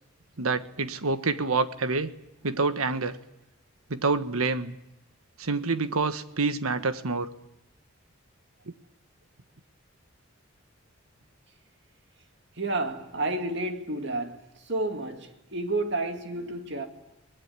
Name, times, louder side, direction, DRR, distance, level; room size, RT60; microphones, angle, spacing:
voice 1, 0.4-2.1 2.4-3.2 3.9-4.8 5.4-7.3, right 3 dB, 90° right, 1.3 m, -27 dB
voice 2, 12.6-16.9, right 2 dB, 55° right, 2.4 m, -31 dB
24.5 x 20.0 x 9.6 m
head